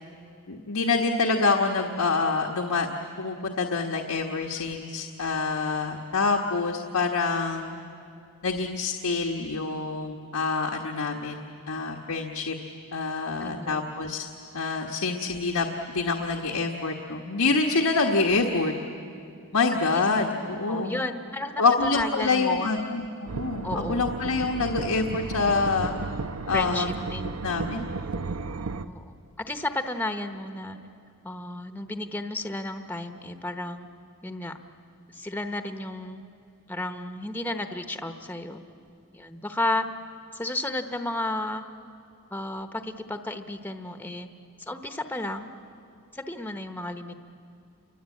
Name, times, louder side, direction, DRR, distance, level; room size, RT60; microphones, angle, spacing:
voice 1, 0.5-2.9 3.2-7.8 8.4-11.4 11.7-12.5 12.9-14.3 14.5-18.7 19.5-21.0 21.6-25.9 26.5-26.9 27.4-27.9, left 3 dB, 85° left, 1 dB, 1.4 m, -26 dB
voice 2, 13.4-13.8 19.9-20.0 20.7-21.5 21.8-22.7 23.6-24.1 26.2-27.3 28.8-29.0 29.4-30.8 31.2-33.9 34.2-34.6 35.1-36.2 36.7-38.6 39.1-39.9 40.3-41.6 42.3-44.3 44.7-45.5 46.1-47.2, left 1 dB, 10° left, 7 dB, 1.0 m, -33 dB
sound 1, 23.3-28.8, right 3 dB, 85° right, 0.8 m, -34 dB
29.0 x 24.0 x 8.5 m, 2.5 s
head